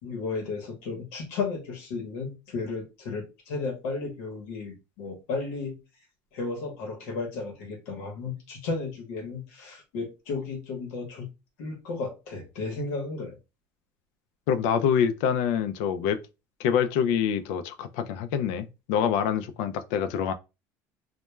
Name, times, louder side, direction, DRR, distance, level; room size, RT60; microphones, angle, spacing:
voice 1, 0.0-5.8 6.3-11.3 11.6-13.4, left 4 dB, 85° left, 0.9 m, -34 dB
voice 2, 14.5-16.2 16.6-20.3, left 8 dB, 70° left, 0.3 m, -26 dB
2.2 x 2.1 x 3.0 m
cardioid pair, 180°, 7 cm